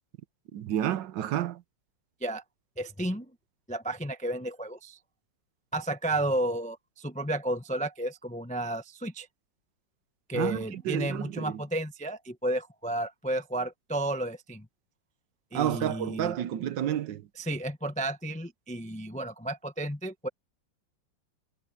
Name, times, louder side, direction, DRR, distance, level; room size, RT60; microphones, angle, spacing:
voice 1, 0.5-1.6 10.3-11.6 15.5-17.2, right 11 dB, 70° right, 1.4 m, -30 dB
voice 2, 2.8-3.3 3.7-5.0 5.7-9.3 10.3-14.7 15.5-16.4 17.4-20.3, right 1 dB, 10° left, 0.5 m, -32 dB
omnidirectional pair, 2.2 m